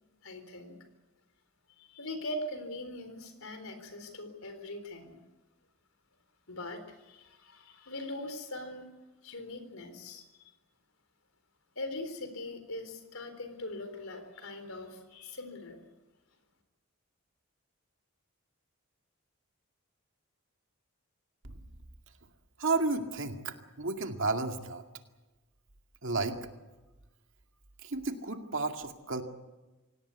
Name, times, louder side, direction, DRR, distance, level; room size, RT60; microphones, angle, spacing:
voice 1, 0.2-0.7 1.8-5.2 6.5-8.9 9.2-10.5 11.8-15.9, left 1 dB, 75° left, 9 dB, 3.9 m, -41 dB
voice 2, 22.6-24.8 26.0-26.4 27.8-29.2, right 3 dB, 60° right, 5 dB, 2.2 m, -32 dB
26.5 x 17.5 x 8.4 m, 1.1 s
head